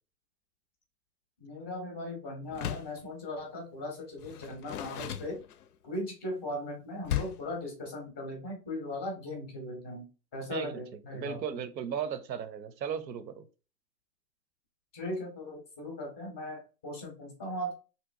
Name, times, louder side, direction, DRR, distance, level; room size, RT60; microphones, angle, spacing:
voice 1, 1.4-5.4 5.8-10.1 10.3-11.6 14.9-17.7, left 1 dB, 10° left, 0.6 m, -38 dB
Door, 2.5-3.0 4.2-5.9 7.0-7.5, left 11 dB, 70° left, 0.5 m, -36 dB
voice 2, 10.5-10.8 11.1-13.4, right 8 dB, 90° right, 0.8 m, -36 dB
3.3 x 2.9 x 2.5 m
hypercardioid pair, 155°, 49 cm